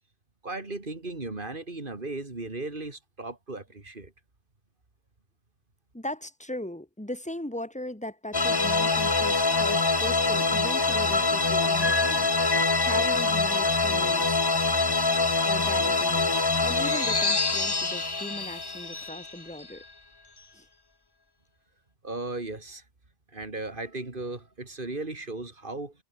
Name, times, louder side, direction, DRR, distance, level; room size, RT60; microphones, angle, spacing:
voice 1, 0.4-4.1 22.0-22.8 23.3-25.9, right 2 dB, 55° right, 3.1 m, -36 dB
voice 2, 5.9-12.3 12.8-14.6 15.4-16.3 16.6-19.8 20.5-20.7, left 1 dB, 5° left, 2.5 m, -38 dB
sound 1, 8.3-19.8, left 3 dB, 25° left, 1.0 m, -24 dB
sound 2, 8.9-19.1, left 1 dB, 65° left, 6.4 m, -59 dB
omnidirectional pair, 1.0 m